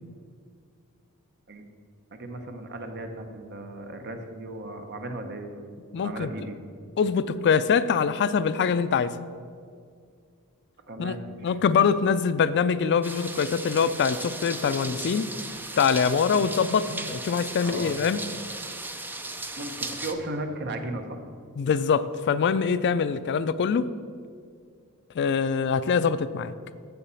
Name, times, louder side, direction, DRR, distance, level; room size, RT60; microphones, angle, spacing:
voice 1, 2.1-5.7 6.0-6.6 10.9-11.6 17.6-18.0 19.6-21.2, right 1 dB, 50° right, 5 dB, 0.9 m, -36 dB
voice 2, 5.9-6.3 7.0-9.1 11.0-11.2 11.4-15.3 15.8-18.2 21.6-23.9 25.2-26.5, left 6 dB, 50° left, 14 dB, 0.4 m, -24 dB
sound 1, 13.0-20.1, right 2 dB, 10° right, 0.5 m, -36 dB
7.4 x 7.0 x 7.0 m, 2.2 s
head